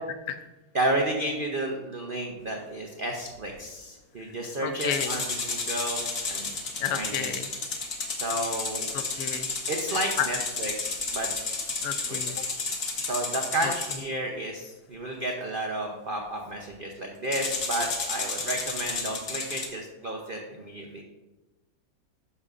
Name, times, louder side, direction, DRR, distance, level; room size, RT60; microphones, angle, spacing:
voice 1, 0.7-6.5 6.9-7.3 8.2-8.9 9.7-11.3 12.1-12.2 13.0-21.0, right 1 dB, 90° right, 1 dB, 0.4 m, -32 dB
voice 2, 4.6-5.2 6.8-7.4 8.9-9.4 10.2-10.3 11.8-12.3, left 10 dB, 70° left, 9 dB, 0.9 m, -31 dB
sound 1, 4.8-14.0 17.3-19.7, left 3 dB, 50° left, 1.5 m, -32 dB
11.0 x 6.6 x 2.5 m, 1.1 s
omnidirectional pair, 2.1 m